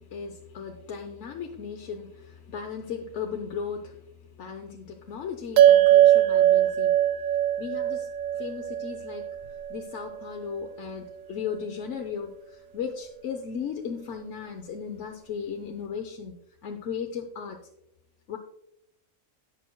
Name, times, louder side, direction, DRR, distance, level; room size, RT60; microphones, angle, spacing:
voice 1, 0.0-4.0 4.4-6.9 7.6-9.3 9.7-16.3 16.6-17.6 18.3-18.4, left 6 dB, 65° left, 3 dB, 1.0 m, -36 dB
sound 1, 5.6-10.2, right 12 dB, 75° right, 1.0 m, -21 dB
17.0 x 6.0 x 2.2 m, 0.79 s
omnidirectional pair, 1.4 m